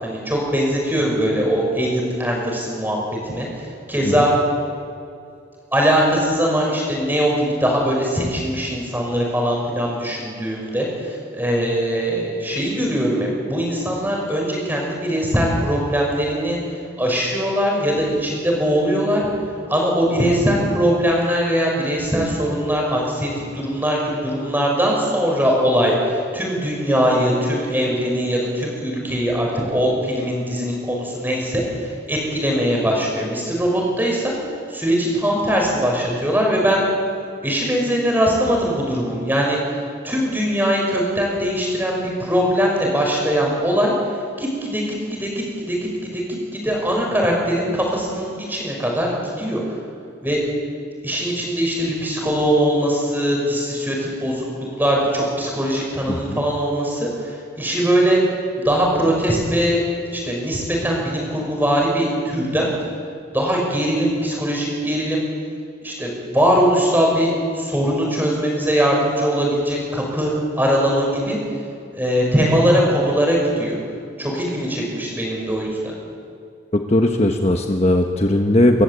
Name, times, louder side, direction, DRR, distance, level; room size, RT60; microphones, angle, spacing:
voice 1, 0.0-3.0 3.2-3.5 3.9-4.3 5.7-16.6 17.0-19.3 19.7-34.3 34.7-36.9 37.4-39.6 40.0-43.9 44.4-49.6 50.2-50.4 51.0-58.2 58.6-59.8 60.1-62.7 63.3-65.2 65.8-71.4 71.9-73.8 74.2-75.9, equal, 10° right, -1 dB, 5.9 m, -21 dB
voice 2, 56.1-56.4 76.7-78.8, left 1 dB, 35° left, 3 dB, 1.2 m, -18 dB
29.0 x 14.5 x 8.4 m, 2.5 s
head